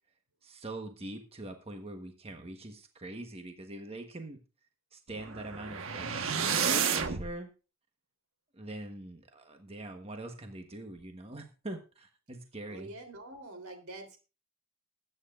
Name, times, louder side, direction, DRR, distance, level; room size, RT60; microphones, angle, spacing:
voice 1, 0.4-4.4 4.9-7.5 8.5-12.9, right 2 dB, 30° right, 5 dB, 1.3 m, -43 dB
sound 1, 5.1-7.3, right 6 dB, 70° right, 1.4 m, -31 dB
voice 2, 12.7-14.2, right 2 dB, 85° right, 4 dB, 3.5 m, -45 dB
21.0 x 9.0 x 2.5 m, 0.32 s
head